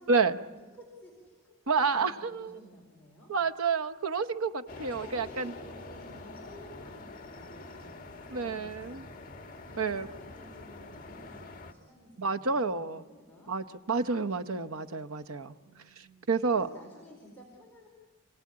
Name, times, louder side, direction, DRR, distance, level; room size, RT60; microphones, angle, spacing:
voice 1, 0.0-3.3 4.9-9.3 9.6-13.5 15.6-17.9, left 1 dB, 10° left, -4 dB, 4.6 m, -53 dB
voice 2, 1.7-2.6 3.3-5.4 8.3-9.0 9.8-10.1 12.2-13.0 13.5-15.5 16.3-16.7, right 4 dB, 80° right, 7 dB, 0.9 m, -29 dB
sound 1, 4.7-11.7, left 2 dB, 40° left, 1.9 m, -46 dB
28.5 x 17.5 x 8.6 m, 1.3 s
head